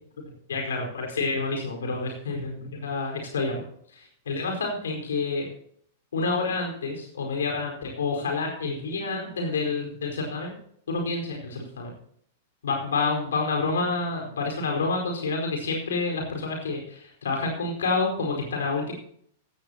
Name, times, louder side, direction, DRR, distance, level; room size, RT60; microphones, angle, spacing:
voice 1, 0.5-3.6 3.9-5.5 6.1-10.6 10.9-11.9 12.6-18.9, left 3 dB, 65° left, 1 dB, 4.6 m, -28 dB
16.0 x 15.5 x 2.9 m, 0.65 s
figure-of-eight pair, 95°, 0 cm